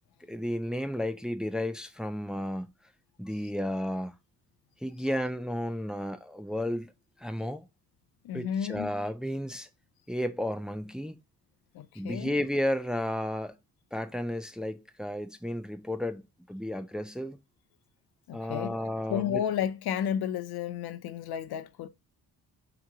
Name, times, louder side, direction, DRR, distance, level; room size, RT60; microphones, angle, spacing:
voice 1, 0.3-2.7 3.2-4.1 4.8-6.9 7.2-7.7 8.3-9.7 10.1-11.2 12.0-13.5 13.9-17.4 18.3-19.4, left 1 dB, ahead, 0.3 m, -33 dB
voice 2, 8.2-8.9 11.7-12.3 18.3-18.8 19.1-21.9, left 9 dB, 80° left, 0.6 m, -32 dB
3.7 x 3.0 x 4.7 m
cardioid pair, 125°, 38 cm